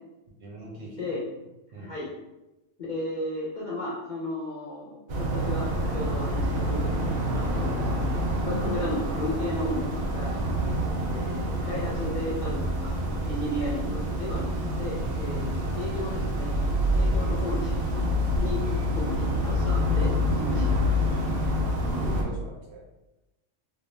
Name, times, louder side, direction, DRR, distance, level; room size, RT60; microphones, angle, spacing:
voice 1, 0.4-1.2 1.7-1.9 10.6-10.9 15.3-15.5 21.6-22.8, equal, 60° right, -3 dB, 0.7 m, -40 dB
voice 2, 1.8-2.1 2.9-7.0 7.3-7.9 8.4-10.3 11.1-13.0 13.2-16.5 16.9-18.1 18.4-18.6 18.9-20.9, left 1 dB, 50° left, -6 dB, 0.6 m, -34 dB
sound 1, 5.1-22.2, equal, 80° right, 0.4 m, -27 dB
2.2 x 2.2 x 3.1 m, 0.99 s
omnidirectional pair, 1.3 m